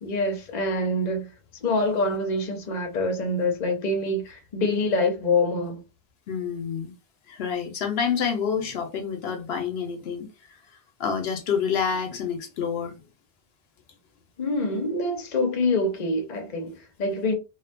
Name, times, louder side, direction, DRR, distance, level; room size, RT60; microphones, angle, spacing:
voice 1, 0.0-1.3 1.6-5.8 14.4-17.3, left 2 dB, 50° left, 0.7 m, -25 dB
voice 2, 6.3-6.9 7.3-10.6 11.0-12.9, left 7 dB, 80° left, 0.8 m, -28 dB
2.4 x 2.2 x 2.5 m
omnidirectional pair, 1.0 m